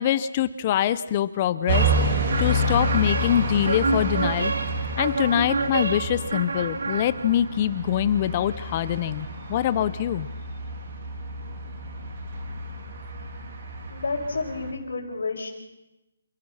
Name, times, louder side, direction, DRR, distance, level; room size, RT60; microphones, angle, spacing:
voice 1, 0.0-2.1 2.4-4.5 5.0-10.3, left 11 dB, 25° left, 15 dB, 0.7 m, -24 dB
sound 1, 1.7-14.7, right 1 dB, 40° right, 3.6 m, -29 dB
sound 2, 1.7-7.6, right 3 dB, 75° right, 2.3 m, -29 dB
voice 2, 13.9-15.5, left 3 dB, 75° left, -6 dB, 5.0 m, -30 dB
28.0 x 16.5 x 5.7 m, 0.99 s
hypercardioid pair, 170°, 0 cm